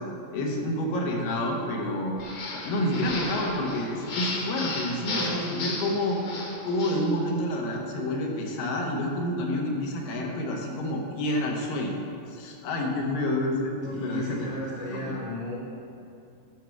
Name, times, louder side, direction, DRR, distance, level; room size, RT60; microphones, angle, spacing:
voice 1, 0.3-2.2 2.5-6.2 6.6-12.0 12.3-14.5 14.9-15.2, left 1 dB, 80° left, 0 dB, 2.8 m, -28 dB
sound 1, 2.2-7.1, left 3 dB, 55° left, 1.5 m, -34 dB
voice 2, 13.8-15.6, left 1 dB, 10° right, -6 dB, 0.4 m, -34 dB
11.5 x 5.9 x 4.6 m, 2.6 s
omnidirectional pair, 4.0 m